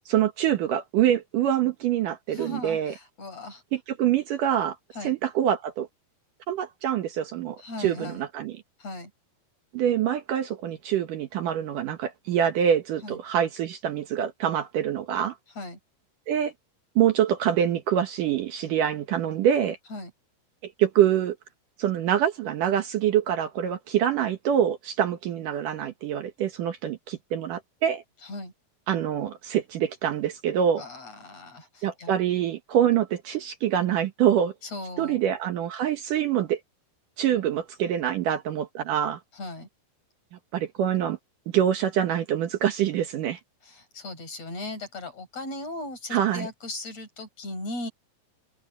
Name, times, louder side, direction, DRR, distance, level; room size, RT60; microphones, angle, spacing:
voice 1, 0.1-2.9 3.7-4.8 5.0-5.9 6.5-8.5 9.7-15.3 16.3-16.5 17.0-19.8 20.6-21.4 21.8-28.0 28.9-30.8 31.8-34.5 35.0-36.6 37.2-39.2 40.5-41.2 41.5-43.4 46.1-46.5, right 10 dB, 65° right, 2.6 m, -25 dB
voice 2, 2.3-3.6 4.9-5.2 7.6-8.3 8.8-9.1 13.0-13.2 15.6-15.8 19.9-20.1 28.2-28.5 30.8-32.1 34.6-35.2 39.3-39.7 43.6-47.9, left 2 dB, 45° left, 6.9 m, -37 dB
open air
omnidirectional pair, 4.3 m